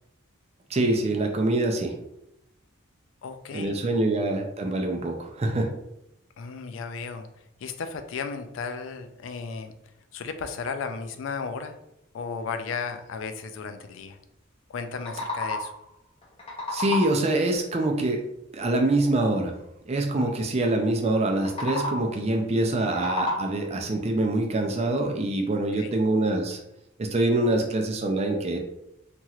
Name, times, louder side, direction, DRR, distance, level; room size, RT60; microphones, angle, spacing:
voice 1, 0.7-1.9 3.5-5.7 16.7-18.2 18.5-19.5 19.9-26.6 27.0-28.6, right 2 dB, 30° right, 2 dB, 0.4 m, -25 dB
voice 2, 3.2-3.7 4.0-4.1 6.4-7.3 7.6-9.7 10.1-11.8 12.1-14.2 14.7-15.7 20.1-20.3 25.7-25.9, left 5 dB, 65° left, 8 dB, 0.3 m, -34 dB
sound 1, 14.9-15.9 16.2-17.4 21.3-22.2 22.7-23.8, left 2 dB, 25° left, 0.6 m, -32 dB
2.9 x 2.8 x 2.3 m, 0.83 s
head